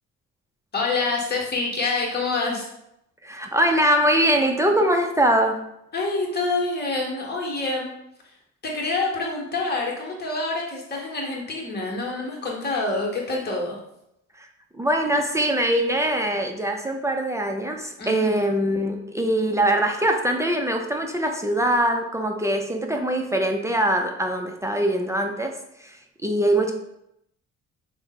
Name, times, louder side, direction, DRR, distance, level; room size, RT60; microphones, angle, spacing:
voice 1, 0.7-2.7 5.9-7.9 8.6-13.8 18.0-18.4, left 3 dB, 35° left, -2 dB, 1.0 m, -27 dB
voice 2, 3.2-5.6 14.4-14.5 14.7-25.5 25.8-26.7, right 1 dB, 10° right, 3 dB, 0.3 m, -22 dB
3.3 x 2.0 x 3.9 m, 0.80 s
cardioid pair, 90°, 30 cm